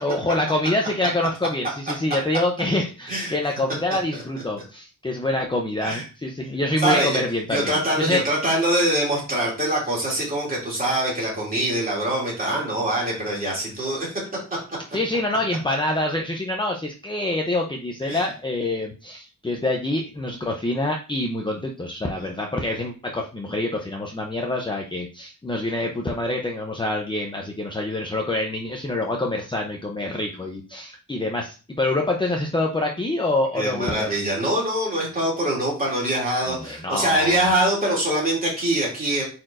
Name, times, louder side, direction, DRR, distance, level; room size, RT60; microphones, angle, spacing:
voice 1, 0.0-8.2 14.9-34.1 36.5-37.5, left 2 dB, 15° left, 0 dB, 0.6 m, -26 dB
voice 2, 6.8-7.2 7.5-14.2 18.0-18.3 33.5-39.3, right 1 dB, 25° right, -4 dB, 2.7 m, -23 dB
8.7 x 4.3 x 2.5 m, 0.35 s
wide cardioid pair, 175°, 34 cm